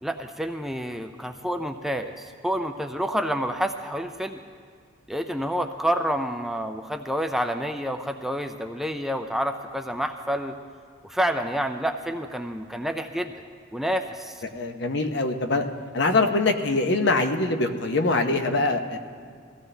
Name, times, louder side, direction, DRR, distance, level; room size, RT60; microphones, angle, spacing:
voice 1, 0.0-4.4 5.1-10.6 11.0-13.3 13.7-14.4, equal, ahead, 5 dB, 0.4 m, -28 dB
voice 2, 14.4-15.7 15.9-19.0, left 3 dB, 60° left, 5 dB, 0.9 m, -23 dB
21.5 x 15.0 x 3.3 m, 2.1 s
head